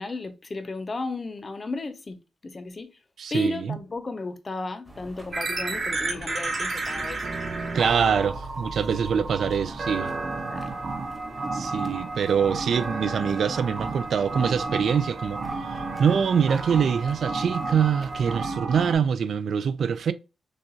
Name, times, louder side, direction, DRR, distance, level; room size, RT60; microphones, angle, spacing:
voice 1, 0.0-2.9 3.3-7.3 8.9-9.1 10.5-10.7, left 3 dB, 30° left, 0.5 m, -34 dB
voice 2, 3.2-3.8 7.7-10.1 11.5-20.1, right 7 dB, 60° right, 0.3 m, -24 dB
sound 1, 4.8-18.4, right 1 dB, 10° right, 0.9 m, -46 dB
sound 2, 5.3-18.9, right 3 dB, 35° right, 0.9 m, -32 dB
6.4 x 2.3 x 2.7 m
wide cardioid pair, 155°, 0 cm